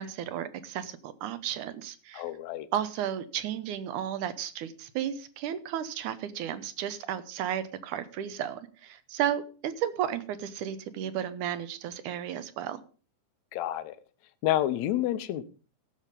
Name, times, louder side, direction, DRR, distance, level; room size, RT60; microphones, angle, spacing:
voice 1, 0.0-2.3 2.7-12.8, right 10 dB, 70° right, 13 dB, 2.2 m, -33 dB
voice 2, 2.1-2.7 13.5-14.0 14.4-15.5, left 13 dB, 70° left, 13 dB, 1.8 m, -29 dB
16.0 x 7.2 x 5.3 m, 0.37 s
omnidirectional pair, 4.1 m